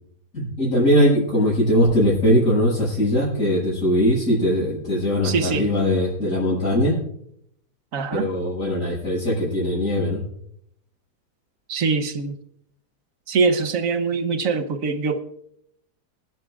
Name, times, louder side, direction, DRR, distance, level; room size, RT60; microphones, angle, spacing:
voice 1, 0.3-7.0 8.1-10.2, equal, 55° left, -10 dB, 6.9 m, -20 dB
voice 2, 5.2-5.7 7.9-8.3 11.7-12.4 13.3-15.2, right 4 dB, 55° right, 9 dB, 1.3 m, -23 dB
25.5 x 12.5 x 2.5 m, 0.71 s
omnidirectional pair, 1.8 m